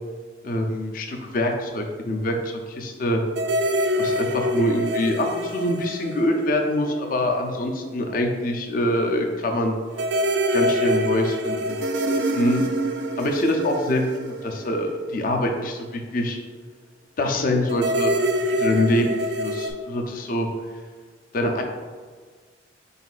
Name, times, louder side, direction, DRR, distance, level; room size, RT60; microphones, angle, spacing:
voice 1, 0.4-3.2 4.0-9.8 10.5-11.8 12.3-12.7 13.2-16.4 17.2-18.2 18.4-20.5 21.3-21.6, left 1 dB, 45° left, 3 dB, 0.4 m, -24 dB
sound 1, 3.3-7.1 7.4-7.5 9.9-15.4 17.7-19.7, equal, 70° right, 0.4 m, -25 dB
4.2 x 3.9 x 2.4 m, 1.5 s
head